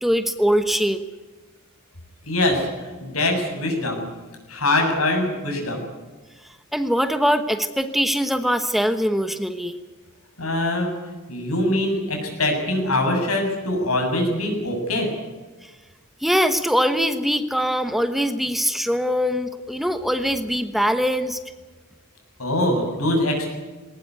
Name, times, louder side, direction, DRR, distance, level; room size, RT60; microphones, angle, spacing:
voice 1, 0.0-1.0 6.7-9.8 15.6-15.7 16.2-21.4, equal, ahead, 8 dB, 1.1 m, -22 dB
voice 2, 2.3-4.0 4.5-5.8 10.4-10.9 11.3-15.1 22.4-23.5, left 1 dB, 80° left, 3 dB, 7.4 m, -23 dB
21.0 x 19.0 x 9.6 m, 1.3 s
head